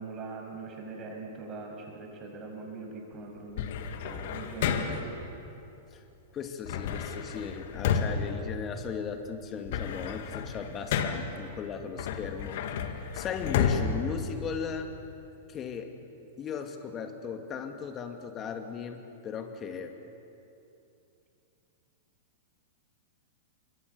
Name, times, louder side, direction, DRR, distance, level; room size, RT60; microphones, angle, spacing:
voice 1, 0.0-5.2, right 3 dB, 30° right, 1 dB, 6.7 m, -41 dB
sound 1, 3.6-5.2 6.6-9.1 9.5-11.4 12.0-15.0, left 7 dB, 55° left, 2.1 m, -31 dB
voice 2, 6.3-15.0 15.5-15.9 16.4-19.9, left 6 dB, 25° left, 6 dB, 2.6 m, -37 dB
28.5 x 25.0 x 7.2 m, 2.8 s
figure-of-eight pair, 100°, 0 cm